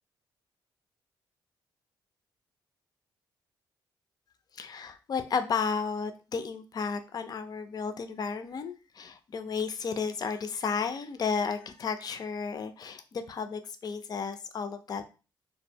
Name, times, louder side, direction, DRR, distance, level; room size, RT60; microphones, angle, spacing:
voice 1, 4.5-15.1, left 5 dB, 45° left, 8 dB, 0.4 m, -33 dB
2.0 x 2.0 x 3.3 m, 0.32 s
supercardioid pair, 60°, 9 cm